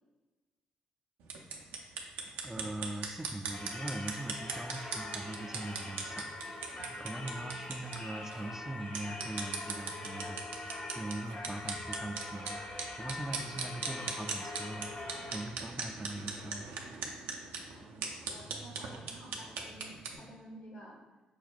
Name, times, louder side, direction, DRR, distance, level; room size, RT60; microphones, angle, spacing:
sound 1, 1.2-20.2, right 5 dB, 75° right, 0.5 m, -41 dB
voice 1, 2.4-16.7, right 1 dB, 15° right, 8 dB, 0.4 m, -42 dB
Singing / Church bell, 3.5-15.4, left 2 dB, 40° left, 0.9 m, -43 dB
voice 2, 17.7-21.0, right 1 dB, 65° left, -2 dB, 1.3 m, -52 dB
5.1 x 2.1 x 4.1 m, 1.2 s
hypercardioid pair, 40°, 4 cm